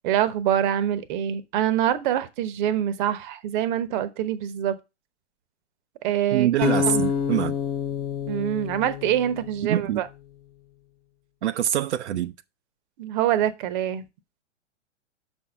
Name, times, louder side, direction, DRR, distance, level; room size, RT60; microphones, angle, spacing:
voice 1, 0.0-4.7 6.0-7.1 8.3-10.1 13.0-14.0, right 10 dB, 40° right, 0.9 m, -25 dB
voice 2, 6.3-7.5 9.6-10.0 11.4-12.3, right 11 dB, 65° right, 0.6 m, -24 dB
sound 1, 6.6-9.8, left 7 dB, 15° left, 0.7 m, -27 dB
6.3 x 4.5 x 5.8 m
figure-of-eight pair, 115°, 36 cm